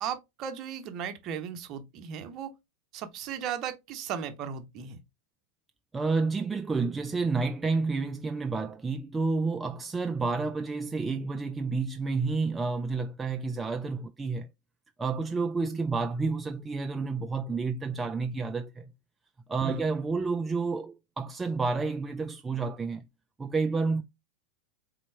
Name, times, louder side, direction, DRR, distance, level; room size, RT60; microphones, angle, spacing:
voice 1, 0.0-2.5 2.9-5.0 19.6-19.8, right 8 dB, 35° right, 0.9 m, -36 dB
voice 2, 5.9-14.5 15.0-18.9 19.5-23.0 23.4-24.0, right 4 dB, 10° right, 0.3 m, -30 dB
4.2 x 3.9 x 3.2 m
figure-of-eight pair, 90°, 0 cm